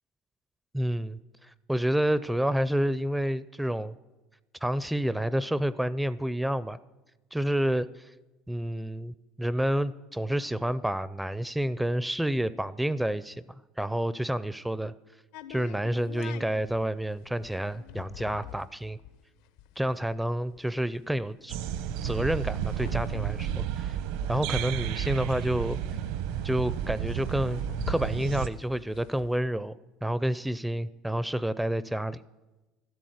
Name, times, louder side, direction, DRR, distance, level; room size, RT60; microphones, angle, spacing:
voice 1, 0.7-3.9 4.6-6.8 7.3-8.1 8.5-14.9 15.5-19.0 19.8-21.6 22.0-24.0 24.3-25.8 26.4-32.2, right 1 dB, 5° right, 17 dB, 0.4 m, -29 dB
sound 1, 15.3-24.8 25.2-25.3 25.4-29.4, left 10 dB, 75° left, 0.9 m, -46 dB
sound 2, 21.5-28.5, right 10 dB, 75° right, 1.0 m, -32 dB
13.0 x 12.5 x 7.9 m, 1.1 s
cardioid pair, 135°, 0 cm